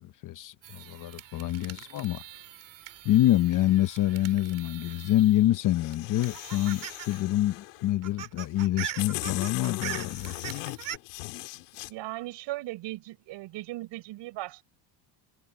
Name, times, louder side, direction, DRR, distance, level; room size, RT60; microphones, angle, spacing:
voice 1, 0.0-2.2 3.0-10.3, left 14 dB, 40° left, 0.8 m, -26 dB
sound 1, 0.6-5.6 5.9-7.2 7.5-7.6 7.9-11.0, right 12 dB, 40° right, 2.2 m, -42 dB
sound 2, 5.6-7.9 8.6-8.7 9.0-11.9, left 26 dB, 90° left, 5.2 m, -39 dB
voice 2, 11.8-14.6, right 17 dB, 60° right, 6.2 m, -37 dB
cardioid pair, 150°, 49 cm